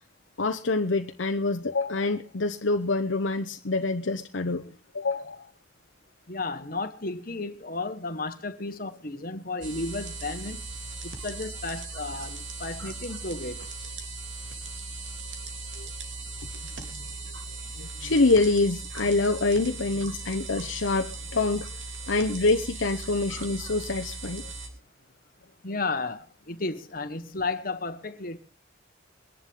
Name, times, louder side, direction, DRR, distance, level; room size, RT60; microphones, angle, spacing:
voice 1, 0.4-5.5 15.8-15.9 17.8-21.7 22.1-24.5, left 3 dB, 75° left, 0.9 m, -26 dB
voice 2, 6.3-10.6 11.0-13.9 25.6-28.4, left 3 dB, 45° left, 1.5 m, -33 dB
sound 1, 9.6-24.7, right 3 dB, 70° right, 3.2 m, -38 dB
23.0 x 11.0 x 3.7 m
head